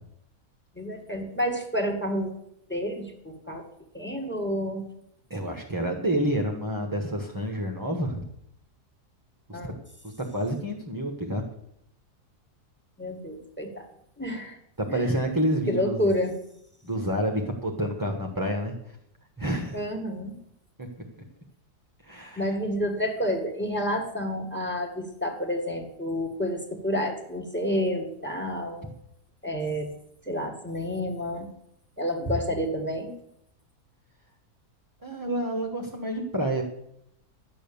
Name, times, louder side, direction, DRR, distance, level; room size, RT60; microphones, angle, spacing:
voice 1, 0.8-2.3 2.7-3.6 3.9-4.8 9.5-9.8 13.0-13.9 14.2-14.6 14.9-15.0 15.7-16.4 19.7-20.3 22.4-28.9 29.4-29.9 30.3-31.5 32.0-33.1, equal, 5° left, 4 dB, 1.9 m, -29 dB
voice 2, 5.3-8.2 9.5-9.7 10.0-11.4 14.8-16.1 16.8-19.0 19.4-19.8 20.8-20.9 21.2-21.3 22.0-22.6 35.0-36.6, right 1 dB, 15° right, 1 dB, 1.2 m, -29 dB
12.0 x 8.7 x 7.0 m, 0.76 s
omnidirectional pair, 1.7 m